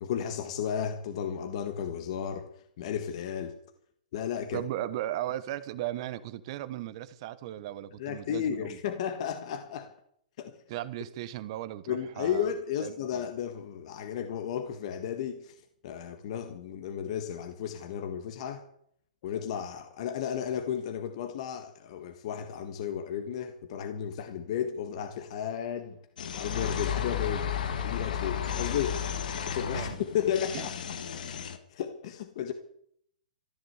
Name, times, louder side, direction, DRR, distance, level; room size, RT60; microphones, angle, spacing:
voice 1, 0.0-2.5 2.8-3.6 4.1-4.6 8.0-9.9 10.4-10.6 11.9-15.5 15.8-18.6 19.2-26.0 26.3-27.5 27.8-29.2 29.5-30.7 31.1-31.2 31.7-32.5, left 8 dB, 45° left, 1.5 m, -33 dB
voice 2, 4.5-8.8 10.7-12.5 12.8-13.2 29.7-29.9 30.5-30.7, right 13 dB, 40° right, 1.1 m, -36 dB
sound 1, 26.2-31.6, left 8 dB, 70° left, 2.3 m, -33 dB
14.5 x 11.0 x 8.1 m
hypercardioid pair, 160°, 5 cm